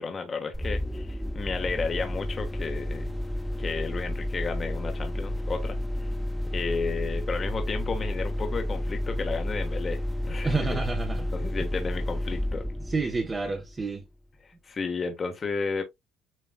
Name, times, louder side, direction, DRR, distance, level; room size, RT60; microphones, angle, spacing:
voice 1, 0.0-3.1 3.6-6.1 6.5-10.8 11.3-12.7 14.5-15.8, left 4 dB, 35° left, 1.2 m, -33 dB
sound 1, 0.5-14.0, left 1 dB, 5° left, 1.1 m, -31 dB
voice 2, 10.4-11.3 12.8-14.1, right 4 dB, 25° right, 1.0 m, -29 dB
7.5 x 3.2 x 2.2 m
cardioid pair, 95°, 0 cm